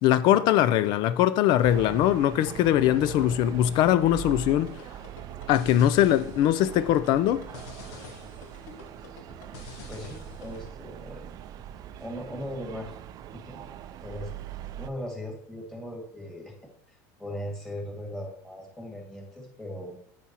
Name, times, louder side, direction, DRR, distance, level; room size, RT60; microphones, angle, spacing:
voice 1, 0.0-4.7 5.5-7.5, left 12 dB, 55° left, 0.4 m, -22 dB
sound 1, 1.6-14.9, right 11 dB, 45° right, 0.4 m, -42 dB
sound 2, 4.6-10.7, left 4 dB, 80° left, 1.3 m, -47 dB
voice 2, 9.9-11.3 12.0-13.0 13.3-13.7 14.0-14.3 14.8-16.5 16.9-20.0, equal, 5° left, 2.1 m, -38 dB
8.4 x 5.7 x 2.9 m
supercardioid pair, 125°, 9 cm